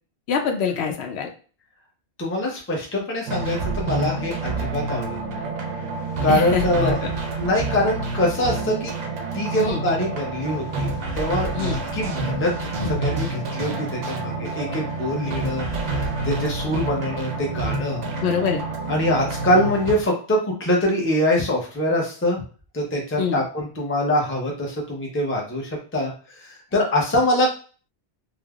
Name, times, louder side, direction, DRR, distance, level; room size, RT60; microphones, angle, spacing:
voice 1, 0.3-1.3 6.3-6.9 9.6-9.8 11.5-11.8 18.2-18.6 23.2-23.4, left 6 dB, 70° left, 3 dB, 0.8 m, -24 dB
voice 2, 2.2-5.5 6.2-7.0 7.4-8.9 9.3-10.9 11.1-12.5 12.8-15.7 16.2-18.0 18.9-22.4 22.7-26.1 26.7-27.5, left 1 dB, 15° left, -1 dB, 0.5 m, -24 dB
sound 1, 3.3-19.9, right 3 dB, 55° right, 0.5 m, -28 dB
3.3 x 2.1 x 2.3 m, 0.39 s
omnidirectional pair, 1.2 m